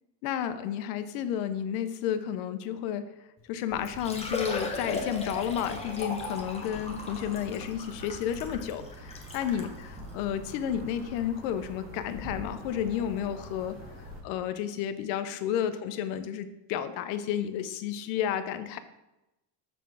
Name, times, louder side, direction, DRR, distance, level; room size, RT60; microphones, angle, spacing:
voice 1, 0.2-3.1 3.5-13.8 14.2-18.8, left 9 dB, 90° left, 11 dB, 0.8 m, -31 dB
Liquid, 3.4-3.5 3.8-9.7 10.4-10.5 11.0-11.1 12.7-12.8 13.0-13.1, left 3 dB, 15° left, 0.8 m, -37 dB
sound 1, 3.7-14.2, equal, 20° right, 2.5 m, -45 dB
6.9 x 4.2 x 4.7 m, 0.95 s
cardioid pair, 145°, 47 cm